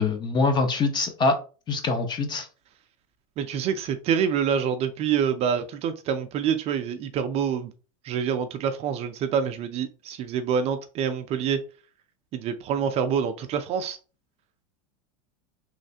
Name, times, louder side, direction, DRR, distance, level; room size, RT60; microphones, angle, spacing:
voice 1, 0.0-1.4 1.7-2.5, left 3 dB, 25° left, 0.6 m, -24 dB
voice 2, 3.4-7.7 8.0-11.6 12.3-14.0, right 7 dB, 35° right, 0.4 m, -26 dB
3.2 x 3.1 x 2.7 m
supercardioid pair, 140°, 18 cm